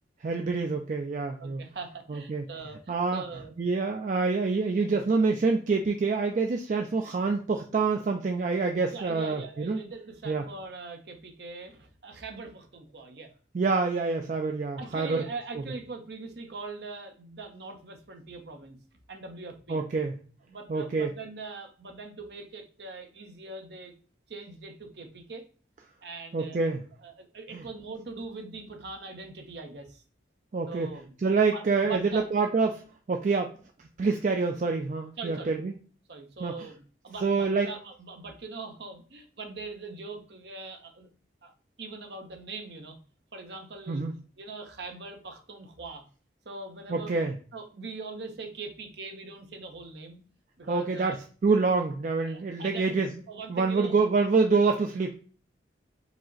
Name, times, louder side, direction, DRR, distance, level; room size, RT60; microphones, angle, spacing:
voice 1, 0.2-1.6 2.1-2.4 2.9-3.2 3.6-9.8 10.3-10.4 13.5-15.2 19.7-20.1 20.7-21.1 26.3-26.8 27.5-27.6 30.5-30.9 31.2-32.8 33.1-33.5 34.0-35.7 36.4-36.5 37.2-37.7 43.9-44.1 46.9-47.3 50.7-51.2 51.4-53.1 53.5-55.1, right 4 dB, 40° right, 3 dB, 0.3 m, -26 dB
voice 2, 1.4-3.6 8.8-13.3 14.7-18.8 19.1-19.8 20.5-23.9 24.3-25.4 26.0-26.6 27.0-30.0 30.7-31.1 31.5-32.3 35.2-35.5 36.1-41.1 41.4-41.5 41.8-43.0 43.3-44.1 44.4-46.1 46.5-47.2 47.5-50.2 50.6-51.2 52.2-53.9, right 3 dB, 60° right, 4 dB, 0.7 m, -42 dB
4.9 x 2.1 x 3.7 m, 0.40 s
head